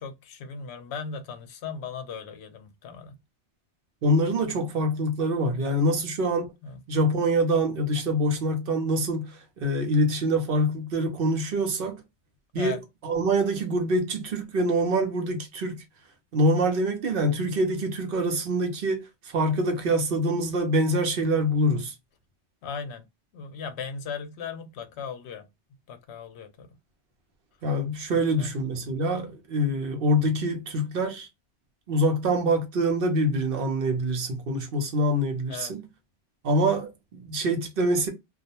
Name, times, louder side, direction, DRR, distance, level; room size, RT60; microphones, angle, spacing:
voice 1, 0.0-3.2 5.5-5.7 6.6-6.8 12.6-12.8 22.6-23.0 23.3-25.4 25.9-26.7 28.1-28.5 28.9-29.0 35.5-35.7, left 6 dB, 70° left, 0.8 m, -37 dB
voice 2, 4.0-6.5 6.9-12.0 12.5-15.8 16.3-21.9 27.6-31.3 31.9-35.9 36.4-38.1, right 1 dB, 55° right, 0.8 m, -25 dB
2.3 x 2.1 x 2.7 m
omnidirectional pair, 1.2 m